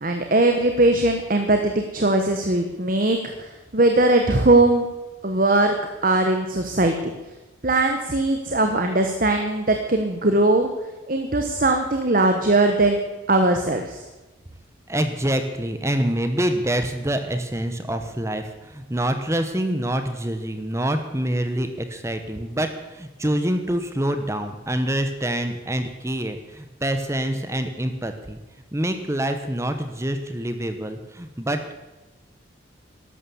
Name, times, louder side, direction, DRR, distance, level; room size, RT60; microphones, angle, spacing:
voice 1, 0.0-4.9 5.2-7.0 7.6-10.7 11.1-13.0 13.3-14.0, right 2 dB, 45° right, 5 dB, 1.3 m, -20 dB
voice 2, 14.9-28.4 28.7-31.6, right 1 dB, 15° right, 8 dB, 1.0 m, -26 dB
13.0 x 12.0 x 7.1 m, 1.1 s
head